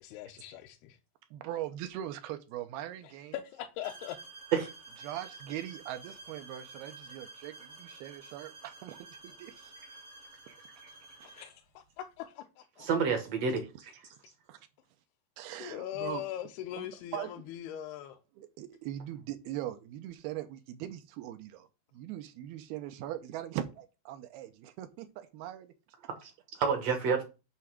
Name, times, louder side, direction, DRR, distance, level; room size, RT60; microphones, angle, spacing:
voice 1, 0.0-1.0 3.0-4.2 11.2-12.9 15.6-18.2, left 12 dB, 80° left, 2.6 m, -41 dB
voice 2, 1.3-3.4 5.0-9.7 10.5-10.6 11.2-11.3 12.8-13.1 13.5-13.6 14.5-14.6 15.4-16.2 16.8-16.9 17.1-17.3 18.4-21.7 21.9-25.7, right 12 dB, 80° right, 2.5 m, -41 dB
sound 1, 3.8-11.6, right 3 dB, 45° right, 1.0 m, -51 dB
voice 3, 12.8-13.9 26.2-26.3 26.6-27.2, right 6 dB, 65° right, 1.6 m, -29 dB
8.6 x 3.4 x 6.1 m
omnidirectional pair, 4.6 m